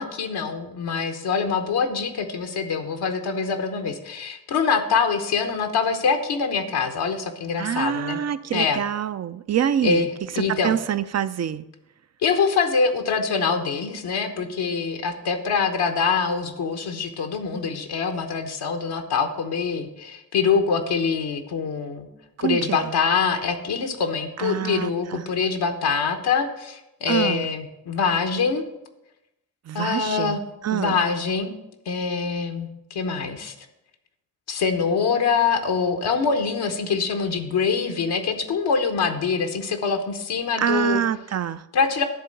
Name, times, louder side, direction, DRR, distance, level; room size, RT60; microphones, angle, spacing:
voice 1, 0.0-8.2 8.5-8.8 9.8-10.1 10.3-10.8 12.2-22.1 22.4-28.7 29.7-30.4 30.7-31.5 31.9-33.5 34.5-41.0 41.7-42.0, left 5 dB, 75° left, 5 dB, 1.0 m, -24 dB
voice 2, 7.6-10.1 10.5-11.6 22.4-22.9 24.4-25.2 27.1-27.5 29.7-31.0 40.6-41.6, right 9 dB, 40° right, 13 dB, 0.5 m, -26 dB
10.5 x 3.7 x 6.5 m, 0.90 s
supercardioid pair, 45°, 39 cm